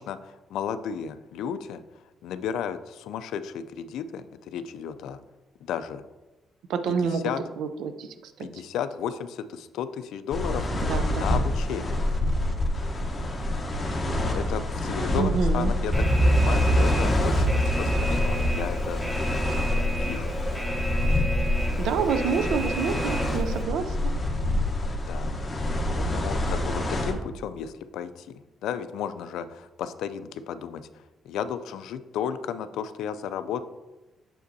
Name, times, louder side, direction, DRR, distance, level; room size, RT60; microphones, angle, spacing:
voice 1, 0.0-1.8 2.2-5.2 5.6-6.0 6.9-7.4 8.4-10.7 11.1-12.1 14.0-19.2 19.5-20.3 25.0-25.3 26.0-30.9 31.2-33.6, left 8 dB, 85° left, 12 dB, 0.3 m, -34 dB
voice 2, 6.7-7.2 7.6-8.5 10.8-11.4 15.2-15.7 21.8-24.1, right 6 dB, 85° right, 10 dB, 0.5 m, -28 dB
sound 1, 10.3-27.1, left 1 dB, 30° left, 1.0 m, -27 dB
Alarm, 15.9-23.6, right 1 dB, ahead, 0.8 m, -27 dB
7.0 x 5.0 x 2.7 m, 1.1 s
cardioid pair, 90°, 0 cm